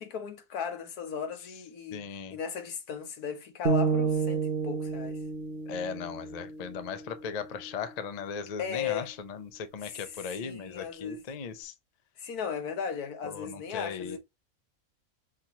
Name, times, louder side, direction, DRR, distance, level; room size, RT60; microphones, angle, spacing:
voice 1, 0.0-2.1 2.3-5.2 8.6-9.1 9.8-11.2 12.2-14.2, left 7 dB, 90° left, 1.5 m, -36 dB
voice 2, 1.9-2.4 5.7-11.7 13.2-14.2, left 6 dB, 55° left, 0.4 m, -38 dB
sound 1, 3.7-7.8, right 5 dB, 45° right, 1.0 m, -31 dB
6.0 x 2.9 x 2.8 m
omnidirectional pair, 1.5 m